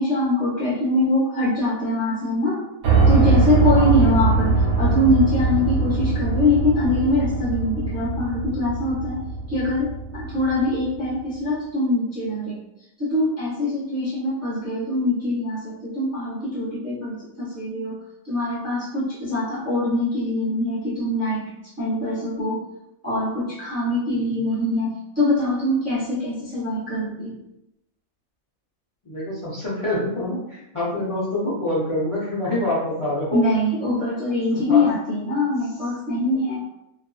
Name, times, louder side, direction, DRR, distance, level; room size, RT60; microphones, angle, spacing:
voice 1, 0.0-2.6 3.1-9.2 9.5-12.6 13.0-18.0 18.2-21.5 21.8-22.6 23.0-27.4 33.3-36.6, left 1 dB, 15° right, -8 dB, 0.5 m, -23 dB
Piano, 2.8-10.8, right 3 dB, 80° right, 1.1 m, -21 dB
voice 2, 3.7-4.0 24.1-24.2 29.0-33.4 34.5-34.9, left 1 dB, 40° left, -9 dB, 0.5 m, -26 dB
2.6 x 2.3 x 2.3 m, 0.87 s
omnidirectional pair, 1.5 m